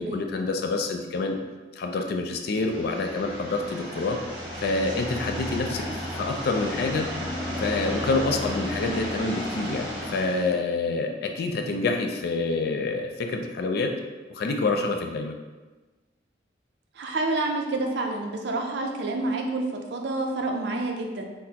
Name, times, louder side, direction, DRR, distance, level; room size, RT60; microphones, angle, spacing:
voice 1, 0.0-1.4 1.8-4.2 4.6-5.8 6.2-7.1 7.6-13.9 14.3-15.3, left 3 dB, 60° left, 4 dB, 0.3 m, -27 dB
sound 1, 2.4-10.5, equal, 25° right, 1.1 m, -33 dB
voice 2, 17.0-19.6 19.9-21.3, right 2 dB, 65° right, 2 dB, 0.4 m, -28 dB
4.0 x 2.0 x 2.8 m, 1.2 s
head